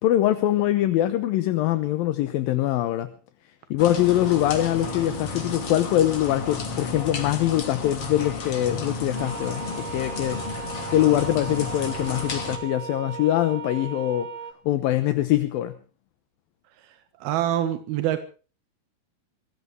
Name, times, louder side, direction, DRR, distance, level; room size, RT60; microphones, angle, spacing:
voice 1, 0.0-3.1 3.7-10.4 10.9-14.3 14.7-15.8, left 13 dB, 75° left, 2.7 m, -23 dB
sound 1, 3.8-12.6, left 4 dB, 40° left, 3.4 m, -33 dB
sound 2, 9.1-14.5, right 6 dB, 60° right, 2.1 m, -37 dB
voice 2, 16.8-18.2, right 11 dB, 85° right, 3.3 m, -26 dB
23.5 x 17.5 x 3.3 m
omnidirectional pair, 4.3 m